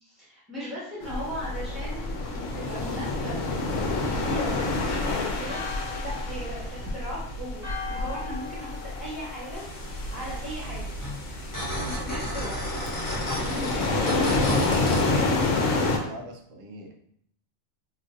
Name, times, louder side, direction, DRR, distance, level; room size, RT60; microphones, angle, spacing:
voice 1, 0.0-5.6 6.0-9.6 10.1-10.9 11.8-12.6 13.3-15.4, equal, 10° right, -9 dB, 1.0 m, -37 dB
sound 1, 1.0-16.0, left 2 dB, 80° left, 1.0 m, -29 dB
Church bell, 4.5-10.2, left 4 dB, 50° right, 1.3 m, -42 dB
sound 2, 9.5-15.0, equal, 20° left, 0.7 m, -34 dB
voice 2, 11.6-12.0 13.3-14.7 15.7-17.0, equal, 80° right, 3 dB, 1.0 m, -41 dB
3.8 x 2.4 x 2.6 m, 0.67 s
omnidirectional pair, 1.3 m